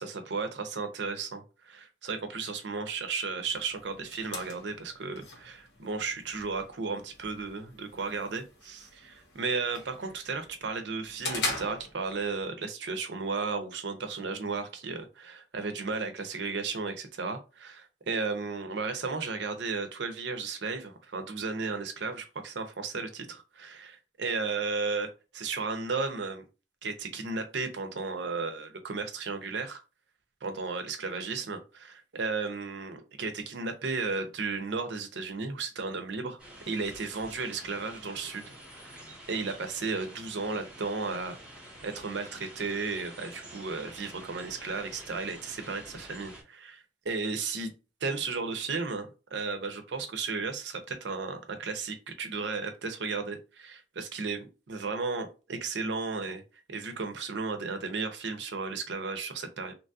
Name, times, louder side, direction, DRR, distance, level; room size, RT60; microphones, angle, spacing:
voice 1, 0.0-25.1 25.4-26.5 26.8-29.8 30.4-36.4 36.7-38.5 38.8-39.0 39.3-41.4 41.8-47.7 48.0-56.4 56.7-59.7, right 4 dB, 80° right, 7 dB, 0.6 m, -34 dB
sound 1, 3.5-12.5, left 3 dB, 65° left, 0.9 m, -41 dB
sound 2, 36.4-46.4, right 1 dB, 5° right, 1.1 m, -48 dB
2.9 x 2.7 x 2.3 m, 0.30 s
head